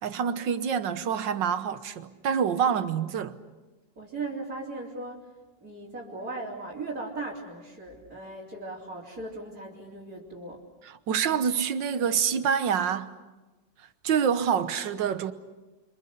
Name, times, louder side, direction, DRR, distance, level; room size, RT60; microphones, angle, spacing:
voice 1, 0.0-3.4 10.8-13.1 14.0-15.3, right 7 dB, 85° right, 1.8 m, -26 dB
voice 2, 4.0-5.2 5.6-10.6, right 2 dB, 50° right, 4.1 m, -38 dB
30.0 x 25.5 x 6.8 m
omnidirectional pair, 2.0 m